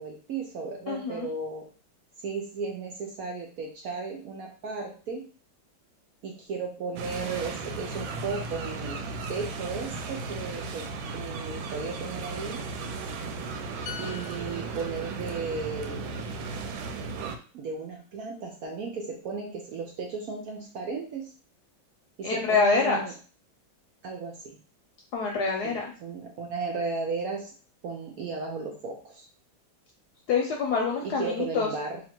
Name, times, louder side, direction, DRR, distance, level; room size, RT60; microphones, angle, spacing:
voice 1, 0.0-1.6 2.2-5.2 6.2-9.0 9.3-10.8 11.1-12.6 14.0-16.1 17.5-21.3 22.2-23.1 24.0-24.6 25.6-27.5 27.8-29.3 31.0-32.0, right 4 dB, 70° right, 1 dB, 0.8 m, -35 dB
voice 2, 0.9-1.3 22.2-23.0 25.1-25.9 30.3-31.7, left 5 dB, 70° left, 1 dB, 1.0 m, -26 dB
sound 1, 7.0-17.4, right 3 dB, 90° right, 1.4 m, -35 dB
sound 2, 13.9-17.5 17.8-18.0, left 8 dB, 85° left, 1.3 m, -46 dB
2.8 x 2.8 x 4.3 m, 0.39 s
omnidirectional pair, 2.1 m